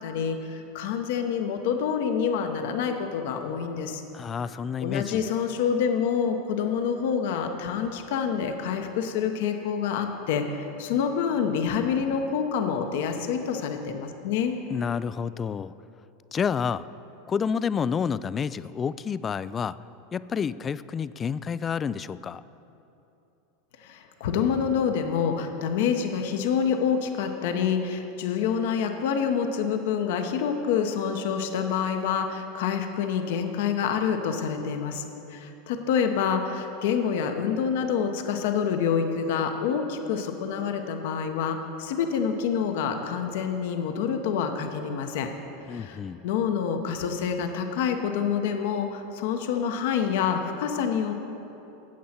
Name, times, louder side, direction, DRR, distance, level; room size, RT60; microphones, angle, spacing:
voice 1, 0.0-4.0 4.4-14.6 23.8-35.0 35.3-45.3 45.7-51.2, left 7 dB, 65° left, 6 dB, 0.9 m, -27 dB
voice 2, 4.1-5.3 14.7-15.7 16.3-16.9 17.3-19.8 20.1-22.4 45.7-46.2, left 6 dB, 30° left, 17 dB, 0.3 m, -29 dB
13.5 x 8.4 x 4.3 m, 2.9 s
hypercardioid pair, 95°, 0 cm